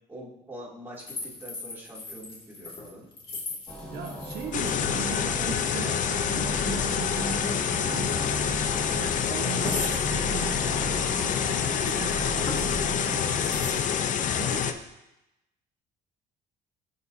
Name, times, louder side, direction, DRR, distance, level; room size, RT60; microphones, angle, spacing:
voice 1, 0.1-3.1, equal, 10° right, -6 dB, 2.7 m, -44 dB
sound 1, 1.0-4.7 5.0-5.5 5.7-6.0 6.3-6.6 7.9-8.0 8.6-8.7 9.5-10.0 11.1-12.1 12.5-12.8 13.4-13.7, left 2 dB, 30° left, 2.2 m, -38 dB
sound 2, 3.7-13.7, equal, 5° left, 1.8 m, -37 dB
voice 2, 3.9-13.8 14.3-14.8, right 6 dB, 75° right, 4 dB, 1.1 m, -39 dB
sound 3, 4.5-14.7, left 8 dB, 50° left, 0.5 m, -27 dB
13.5 x 4.8 x 2.7 m, 0.91 s
cardioid pair, 110°, 17 cm